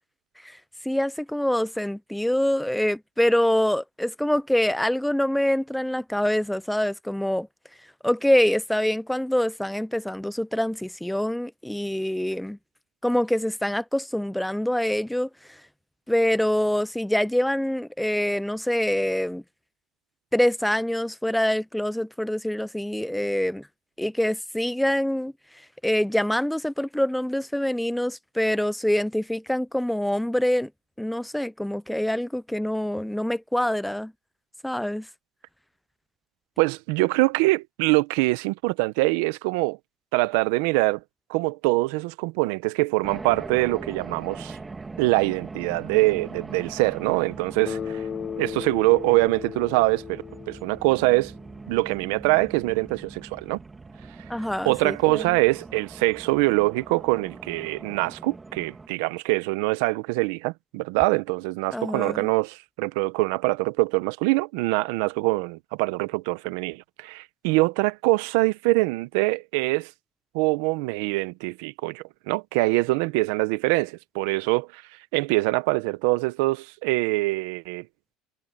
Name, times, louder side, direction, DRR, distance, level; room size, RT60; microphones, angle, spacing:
voice 1, 0.8-7.5 8.0-12.6 13.0-15.3 16.1-19.4 20.3-23.6 24.0-25.3 25.8-30.7 31.0-34.1 34.6-35.1 54.3-55.3 61.7-62.3, left 1 dB, ahead, 0.4 m, -25 dB
voice 2, 36.6-39.8 40.1-41.0 41.3-44.6 45.0-48.0 48.4-51.3 51.7-53.6 54.6-69.9 70.3-74.8 75.1-77.9, right 23 dB, 80° right, 0.8 m, -24 dB
sound 1, 43.0-58.9, right 3 dB, 15° right, 2.4 m, -41 dB
Bass guitar, 47.7-51.7, left 8 dB, 35° left, 3.4 m, -36 dB
cardioid pair, 130°, 0 cm